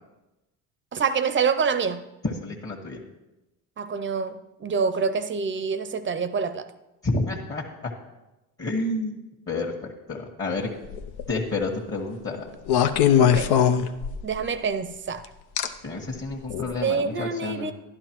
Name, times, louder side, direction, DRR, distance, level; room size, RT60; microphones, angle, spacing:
voice 1, 0.9-2.0 3.8-6.7 13.2-13.5 14.2-15.2 16.8-17.7, right 5 dB, 30° right, 0.6 m, -26 dB
voice 2, 2.2-3.0 7.0-7.9 8.6-9.2 9.5-10.7 11.3-12.5 15.6-17.7, left 2 dB, 35° left, 1.5 m, -30 dB
sound 1, 10.9-11.3 12.7-14.4 15.6-15.7 16.5-16.7, left 9 dB, 75° left, 0.7 m, -20 dB
11.5 x 11.0 x 3.0 m
supercardioid pair, 90°, 40 cm